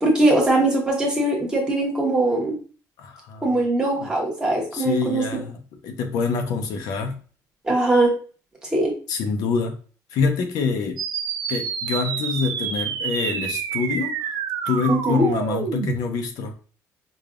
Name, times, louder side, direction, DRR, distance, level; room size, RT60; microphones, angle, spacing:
voice 1, 0.0-2.6 3.4-5.2 7.6-8.1 8.7-8.9 14.9-15.3, right 2 dB, 10° right, 1.0 m, -21 dB
voice 2, 3.0-3.6 4.0-4.1 4.7-7.2 9.1-9.8 10.1-11.0 11.5-14.3 14.7-16.5, left 5 dB, 65° left, 0.6 m, -26 dB
sound 1, 11.0-16.0, right 7 dB, 75° right, 0.5 m, -28 dB
5.0 x 2.4 x 2.4 m
cardioid pair, 165°, 7 cm